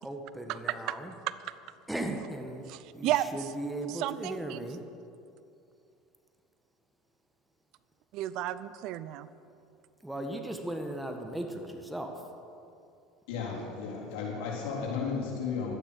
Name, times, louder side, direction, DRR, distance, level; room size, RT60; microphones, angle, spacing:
voice 1, 0.0-1.1 1.9-2.7 2.9-4.8 10.0-12.1, right 1 dB, 5° right, 4 dB, 1.5 m, -37 dB
voice 2, 2.7-3.3 3.9-4.7 8.1-9.3, right 14 dB, 60° right, 16 dB, 0.4 m, -33 dB
voice 3, 13.3-15.8, left 5 dB, 65° left, -4 dB, 3.9 m, -34 dB
12.0 x 9.9 x 6.5 m, 2.6 s
hypercardioid pair, 75°, 0 cm